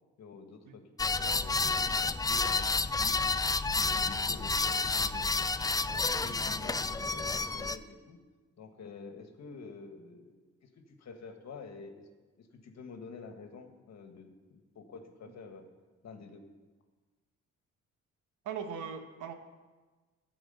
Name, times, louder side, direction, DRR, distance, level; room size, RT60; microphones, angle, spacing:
voice 1, 0.2-3.2 3.7-5.5 5.9-8.2 8.6-12.1 12.4-15.6 16.0-16.4, left 4 dB, 60° left, 6 dB, 1.6 m, -48 dB
sound 1, 1.0-7.8, left 3 dB, 15° left, 0.4 m, -30 dB
voice 2, 5.9-6.3 18.4-19.3, right 7 dB, 80° right, 6 dB, 1.3 m, -40 dB
14.5 x 4.8 x 7.9 m, 1.3 s
cardioid pair, 90°, 30 cm